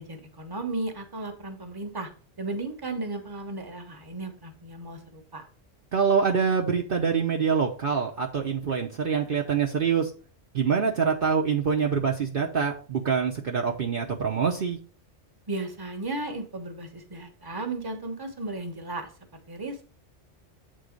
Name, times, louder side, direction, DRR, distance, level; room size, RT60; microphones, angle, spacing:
voice 1, 0.0-2.1 2.4-5.4 15.5-19.1 19.5-19.8, right 2 dB, 20° right, 5 dB, 1.1 m, -35 dB
voice 2, 5.9-10.1 10.5-14.8, right 6 dB, 55° right, 0 dB, 1.0 m, -25 dB
7.7 x 3.8 x 5.1 m, 0.39 s
omnidirectional pair, 1.1 m